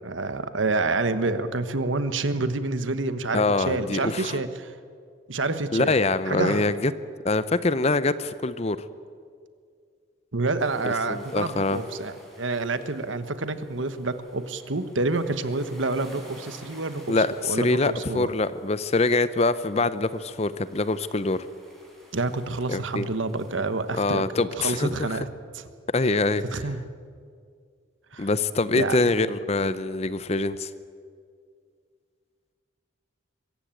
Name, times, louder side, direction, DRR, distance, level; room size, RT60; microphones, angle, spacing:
voice 1, 0.0-4.8 5.3-5.9 6.3-6.7 10.3-17.2 17.5-18.3 22.1-24.2 24.6-25.3 25.5-25.7 26.5-26.8 28.1-28.3 28.7-29.0, right 3 dB, 75° right, 11 dB, 1.2 m, -28 dB
voice 2, 3.3-4.4 5.7-6.9 7.2-8.8 10.8-11.8 17.1-21.4 22.7-23.1 24.0-25.2 25.9-26.4 28.2-30.7, left 3 dB, 35° left, 15 dB, 0.6 m, -24 dB
sound 1, 10.6-23.9, equal, ahead, 5.1 m, -53 dB
23.5 x 15.0 x 9.0 m, 2.2 s
head